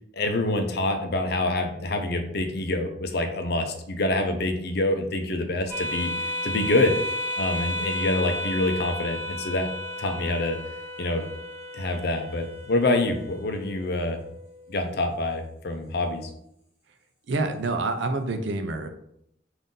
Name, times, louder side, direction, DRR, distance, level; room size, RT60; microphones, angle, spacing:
voice 1, 0.1-6.1 6.4-7.0 7.4-9.7 10.0-10.6 11.0-11.2 11.7-14.2 14.7-16.2, left 2 dB, 60° left, 6 dB, 0.5 m, -26 dB
sound 1, 5.7-14.7, left 1 dB, 10° right, 1.4 m, -33 dB
voice 2, 17.3-18.9, right 2 dB, 80° right, 7 dB, 0.5 m, -27 dB
3.8 x 2.6 x 3.7 m, 0.74 s
head